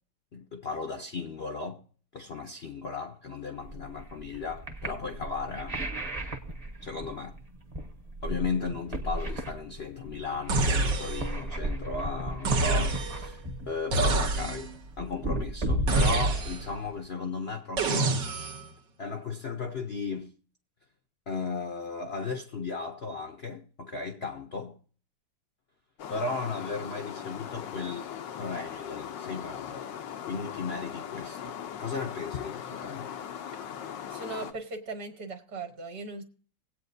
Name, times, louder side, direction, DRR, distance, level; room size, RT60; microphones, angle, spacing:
voice 1, 0.3-1.8 2.1-5.8 6.8-7.4 8.2-13.4 13.7-14.7 15.0-18.5 19.0-20.3 21.3-24.8 26.1-28.1 28.4-29.9 30.3-33.1, left 4 dB, 55° left, 0.7 m, -35 dB
sound 1, 3.6-17.0, right 1 dB, 30° right, 0.8 m, -34 dB
sound 2, 10.5-11.4 12.4-13.3 13.9-14.8 15.9-16.8 17.8-18.7, right 2 dB, 80° right, 1.8 m, -27 dB
sound 3, 26.0-34.5, left 8 dB, 85° left, 1.5 m, -39 dB
voice 2, 34.1-36.2, right 3 dB, 60° right, 2.0 m, -38 dB
20.5 x 8.5 x 2.6 m
omnidirectional pair, 2.0 m